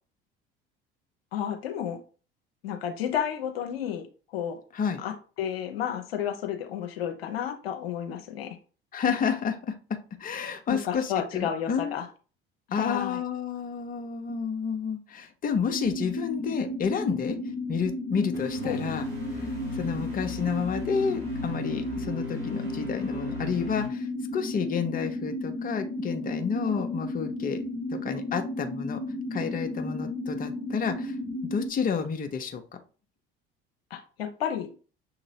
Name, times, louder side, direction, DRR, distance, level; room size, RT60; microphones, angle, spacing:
voice 1, 1.3-2.0 2.6-4.0 4.3-4.6 5.0-8.6 10.7-12.1 12.7-13.2 18.6-18.8 33.9-34.7, left 9 dB, 75° left, 4 dB, 0.7 m, -31 dB
voice 2, 8.9-11.9 12.7-17.4 17.7-19.0 19.3-19.5 19.7-24.1 24.3-27.6 27.9-29.0 29.3-31.2 31.5-32.8, left 6 dB, 30° left, 6 dB, 0.8 m, -30 dB
sound 1, 15.7-31.7, left 2 dB, 65° right, 2.6 m, -33 dB
sound 2, 18.3-23.9, left 2 dB, 85° right, 1.1 m, -40 dB
6.3 x 2.9 x 2.8 m, 0.37 s
figure-of-eight pair, 60°, 30 cm